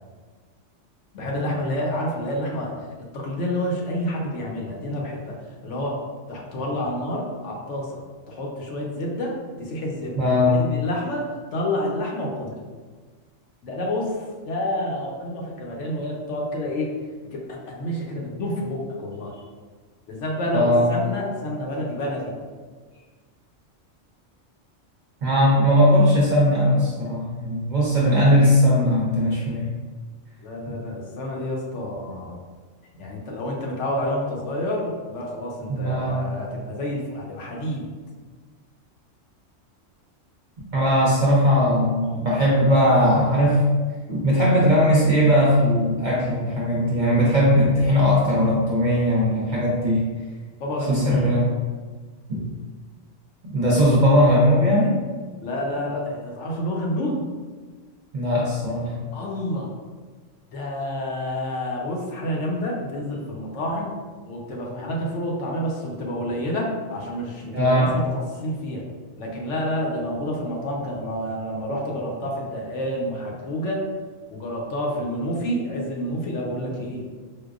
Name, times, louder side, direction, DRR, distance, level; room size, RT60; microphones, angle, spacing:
voice 1, 1.1-2.9 3.1-6.0 6.3-8.0 8.3-12.6 13.6-16.9 17.3-19.4 20.1-22.3 30.4-32.4 33.0-37.9 50.6-51.1 55.4-57.3 59.1-59.7 60.5-63.9 64.3-68.8 69.2-73.9 74.3-77.0, equal, 70° left, -1 dB, 0.9 m, -29 dB
voice 2, 10.2-10.6 20.5-21.0 25.2-29.7 30.7-30.8 35.8-36.3 40.7-43.6 44.1-50.1 50.9-51.5 52.3-52.4 53.4-55.0 58.1-59.0 67.5-68.0, equal, 50° right, -5 dB, 0.6 m, -19 dB
4.5 x 2.1 x 2.4 m, 1.4 s
omnidirectional pair, 1.3 m